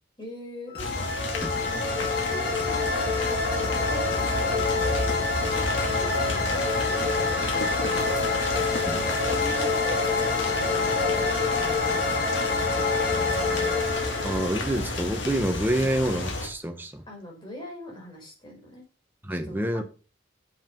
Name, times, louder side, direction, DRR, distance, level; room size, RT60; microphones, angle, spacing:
voice 1, 0.2-1.1 1.7-1.9 2.2-4.9 5.5-8.3 8.9-12.7 17.1-18.8 19.4-19.8, left 1 dB, 25° left, 4.9 m, -42 dB
sound 1, 0.7-15.5, left 3 dB, 55° left, 2.5 m, -27 dB
sound 2, 0.8-16.5, left 2 dB, 85° left, 2.7 m, -32 dB
voice 2, 14.2-17.0 19.2-19.8, right 1 dB, 10° right, 1.2 m, -27 dB
8.5 x 7.8 x 5.4 m
head